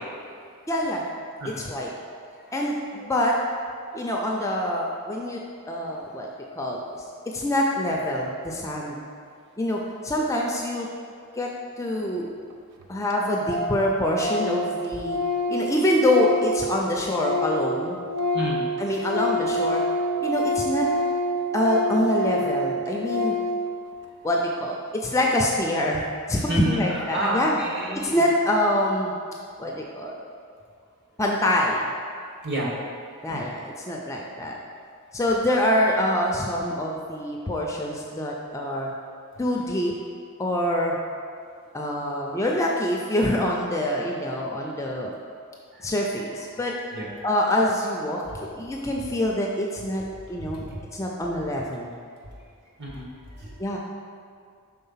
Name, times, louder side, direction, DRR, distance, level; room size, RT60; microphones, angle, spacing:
voice 1, 0.7-1.0 1.6-1.9 2.5-3.4 3.9-5.4 5.7-6.3 6.6-6.8 7.3-9.0 9.6-10.9 11.4-11.5 11.8-12.3 12.9-15.2 15.5-18.0 18.8-19.8 20.2-20.9 21.5-23.3 24.2-27.6 27.9-29.1 29.6-30.1 31.2-31.9 33.2-34.5 35.1-38.9 39.4-39.9 40.4-41.0 41.7-45.1 45.8-46.7 47.2-50.0 50.3-50.6 50.9-52.0 53.6-53.8, left 1 dB, 15° left, -1 dB, 0.4 m, -25 dB
voice 2, 1.4-2.5 3.0-3.1 3.8-3.9 5.9-6.0 6.8-6.9 8.8-8.9 11.2-11.3 18.3-18.7 26.5-28.2 32.2-32.8 33.3-33.5 34.1-34.2 45.7-45.9 46.2-47.3 50.5-50.8 52.8-53.6, right 1 dB, 50° right, -5 dB, 1.5 m, -32 dB
Organ, 12.5-12.6 12.8-12.9 13.1-13.2 13.5-13.8 14.1-17.7 18.0-23.6, left 1 dB, 80° right, 0.5 m, -27 dB
5.5 x 3.8 x 5.6 m, 2.3 s
head